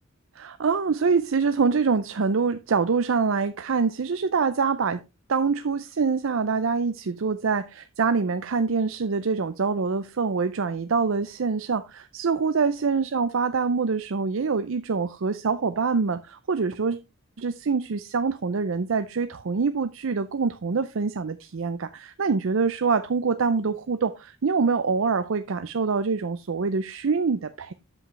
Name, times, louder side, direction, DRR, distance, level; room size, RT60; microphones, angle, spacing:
voice 1, 0.4-5.0 5.3-17.0 17.4-27.7, right 5 dB, 65° right, 0.5 m, -25 dB
8.4 x 7.5 x 3.2 m
head